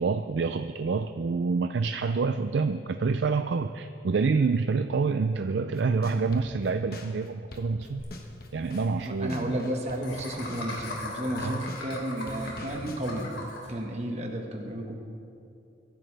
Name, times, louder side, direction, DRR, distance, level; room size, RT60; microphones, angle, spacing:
voice 1, 0.0-8.0 8.5-9.6 11.4-11.6, right 4 dB, 70° right, 9 dB, 0.4 m, -27 dB
sound 1, 5.7-11.9 12.3-13.5, left 1 dB, 50° left, 1.3 m, -44 dB
Laughter, 8.0-8.1 8.3-8.4 8.6-8.8 10.0-13.7, left 2 dB, 85° left, 3.3 m, -38 dB
voice 2, 8.7-13.3 13.7-14.9, right 1 dB, 35° right, 1 dB, 1.5 m, -33 dB
23.0 x 11.0 x 3.4 m, 2.7 s
head